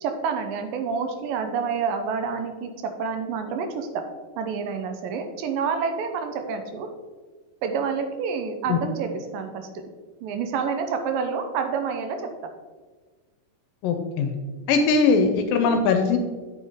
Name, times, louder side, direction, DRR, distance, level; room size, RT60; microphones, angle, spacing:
voice 1, 0.0-4.0 4.4-6.9 7.6-9.7 10.2-12.3, right 5 dB, 85° right, 6 dB, 2.5 m, -28 dB
voice 2, 13.8-14.3 14.7-16.2, left 4 dB, 85° left, 5 dB, 2.3 m, -20 dB
8.6 x 7.9 x 3.7 m, 1.4 s
omnidirectional pair, 4.1 m